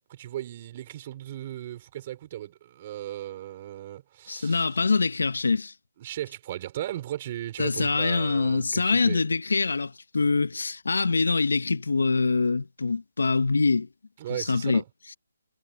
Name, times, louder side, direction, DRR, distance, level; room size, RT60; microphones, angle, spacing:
voice 1, 0.1-4.6 6.0-9.2 14.2-14.8, right 13 dB, 30° right, 5.5 m, -36 dB
voice 2, 4.3-5.7 7.6-13.9 14.3-14.8, left 4 dB, 80° left, 1.2 m, -24 dB
hypercardioid pair, 160°, 0 cm